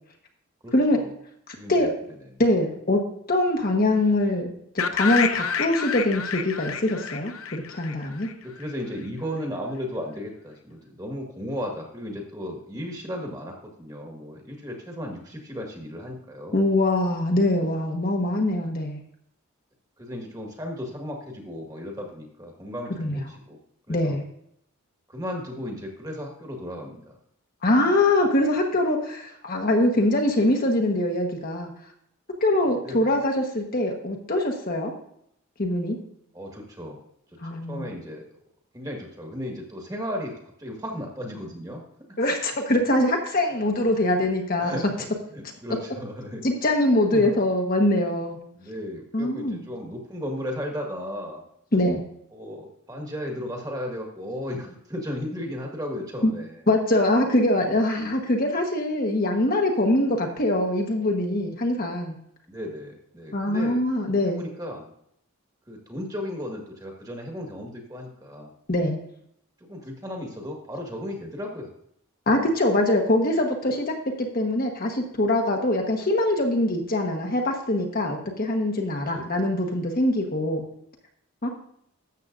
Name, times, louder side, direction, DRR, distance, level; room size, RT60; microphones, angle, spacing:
voice 1, 0.6-1.1 1.5-1.9 8.4-16.6 20.0-23.6 23.9-24.2 25.1-27.1 32.8-33.2 36.3-37.0 37.7-38.2 38.7-41.8 44.6-44.9 45.3-46.4 47.1-47.3 48.5-51.4 52.3-56.6 62.5-63.8 64.2-64.9 65.7-68.5 69.7-71.7 79.1-79.3 79.5-79.8, equal, 15° right, 1 dB, 1.6 m, -35 dB
voice 2, 2.4-3.0 3.3-8.3 16.5-19.0 23.0-23.2 23.9-24.2 27.6-31.7 32.4-34.9 35.6-36.0 37.4-37.9 42.2-44.8 46.4-48.4 49.1-49.6 51.7-52.0 56.2-56.3 56.7-62.1 63.3-64.4 68.7-69.0 72.3-80.6 81.4-81.5, left 1 dB, 40° left, 2 dB, 1.1 m, -23 dB
sound 1, 4.8-8.7, left 7 dB, 70° left, 0.6 m, -29 dB
12.5 x 7.7 x 2.5 m, 0.71 s
head